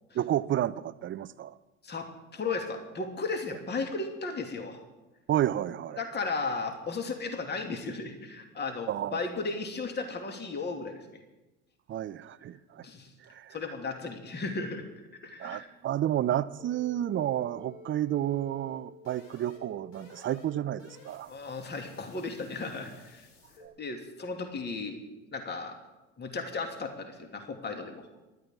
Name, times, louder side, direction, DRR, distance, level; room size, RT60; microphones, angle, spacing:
voice 1, 0.1-1.6 5.3-6.0 8.9-9.2 11.9-12.8 13.2-13.6 15.4-21.3 23.6-23.7, right 12 dB, 30° right, 16 dB, 0.7 m, -31 dB
voice 2, 1.8-4.8 6.0-11.0 12.8-13.1 13.5-14.8 15.2-15.7 21.3-23.3 23.8-25.0 25.3-25.8 26.2-28.1, left 3 dB, 25° left, 4 dB, 2.7 m, -35 dB
sound 1, 16.6-23.7, left 2 dB, 65° left, 4.5 m, -52 dB
26.5 x 12.0 x 3.8 m, 1.1 s
figure-of-eight pair, 70°, 40 cm